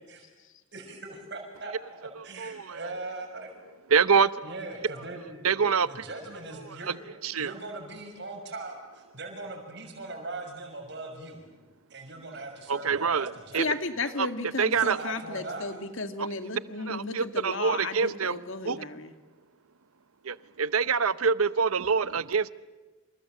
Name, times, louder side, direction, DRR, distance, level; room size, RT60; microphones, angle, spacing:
voice 1, 0.7-3.5 4.4-5.6 5.8-7.0 7.4-11.4 11.9-13.7 14.7-15.8, right 2 dB, 50° right, 6.5 m, -40 dB
voice 2, 2.4-2.8 3.9-4.4 5.4-6.0 7.2-7.5 12.7-13.7 14.2-14.3 14.6-15.0 16.2-16.3 16.9-18.4 18.6-18.8 20.2-22.5, right 5 dB, 80° right, 0.8 m, -25 dB
voice 3, 13.6-19.1, left 3 dB, 65° left, 2.0 m, -34 dB
27.5 x 27.5 x 7.7 m
head